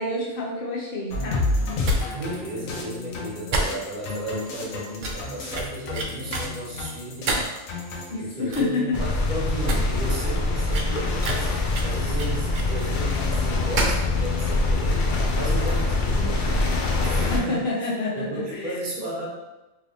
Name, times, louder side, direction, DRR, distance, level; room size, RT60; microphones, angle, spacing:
voice 1, 0.0-1.4 8.1-9.0 17.2-18.8, left 2 dB, 50° left, -3 dB, 0.8 m, -28 dB
sound 1, 1.1-8.1, left 2 dB, 90° left, 1.0 m, -30 dB
sound 2, 1.8-2.0 2.3-2.4 2.7-2.8 3.5-4.1 4.5-4.6 5.0-5.3 5.5-6.5 7.3-7.6 8.1-8.2 8.5-8.8 9.1-9.2 9.5-9.8 10.1-10.2 10.7-12.9 13.8-14.1 14.3-14.4, right 2 dB, 70° right, 0.4 m, -28 dB
voice 2, 2.1-17.6 18.1-19.3, right 2 dB, 40° right, -5 dB, 1.1 m, -34 dB
sound 3, 8.9-17.4, left 2 dB, 70° left, 0.4 m, -24 dB
3.2 x 3.0 x 2.7 m, 1.0 s
omnidirectional pair, 1.4 m